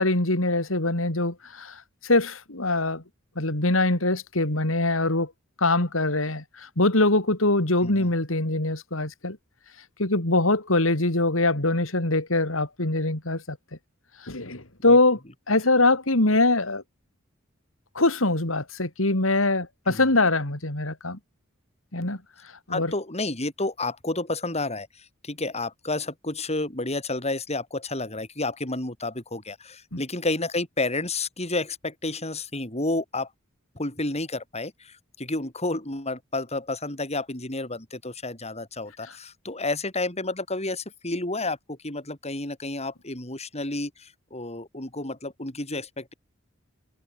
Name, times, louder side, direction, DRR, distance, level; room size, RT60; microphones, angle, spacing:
voice 1, 0.0-3.0 3.4-5.3 5.6-9.4 10.0-13.6 14.2-15.2 15.5-16.8 18.0-21.2 21.9-22.2 22.7-22.9 29.9-30.0, left 2 dB, 90° left, 4.1 m, -23 dB
voice 2, 22.7-24.9 25.2-33.3 33.8-46.1, left 2 dB, 35° left, 7.3 m, -30 dB
head